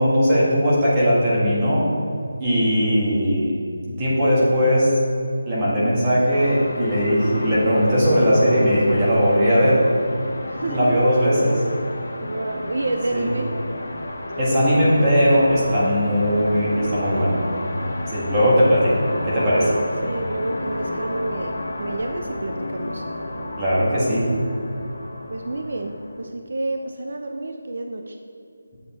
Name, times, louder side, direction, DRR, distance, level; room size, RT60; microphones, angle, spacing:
voice 1, 0.0-1.9 2.4-3.6 3.9-5.0 5.5-9.8 10.7-11.6 13.1-13.3 14.4-17.4 18.1-19.6 23.6-24.3, equal, 15° right, -8 dB, 1.6 m, -19 dB
sound 1, 6.3-26.2, left 1 dB, 70° left, 1.3 m, -32 dB
voice 2, 10.4-11.1 12.2-13.5 19.6-23.0 25.3-28.2, right 2 dB, 60° right, 4 dB, 0.6 m, -29 dB
8.6 x 6.7 x 4.3 m, 2.5 s
figure-of-eight pair, 175°, 0 cm